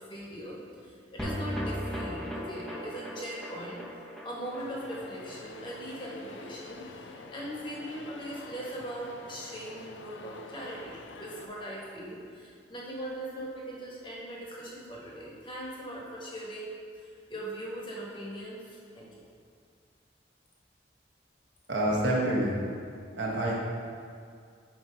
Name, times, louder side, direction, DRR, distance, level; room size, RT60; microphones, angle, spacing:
voice 1, 0.0-3.8 4.2-19.1, right 1 dB, 25° left, -5 dB, 1.2 m, -40 dB
sound 1, 1.2-7.6 7.9-8.0 8.3-8.4, equal, 5° left, 0.6 m, -39 dB
sound 2, 4.6-11.5, left 3 dB, 80° left, 0.4 m, -47 dB
voice 2, 21.7-22.6 23.2-23.5, right 1 dB, 75° right, -3 dB, 1.2 m, -27 dB
7.3 x 3.0 x 5.5 m, 2.2 s
head